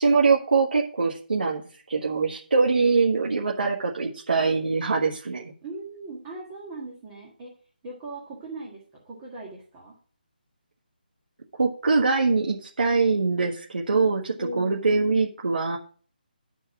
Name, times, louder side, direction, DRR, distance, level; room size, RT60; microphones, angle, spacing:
voice 1, 0.0-1.6 1.9-5.5 11.6-15.8, right 4 dB, 75° right, -2 dB, 1.5 m, -23 dB
voice 2, 5.6-7.5 7.8-9.9 14.4-14.8, right 2 dB, 15° right, -4 dB, 1.7 m, -39 dB
10.5 x 4.6 x 5.9 m, 0.43 s
hypercardioid pair, 170°, 5 cm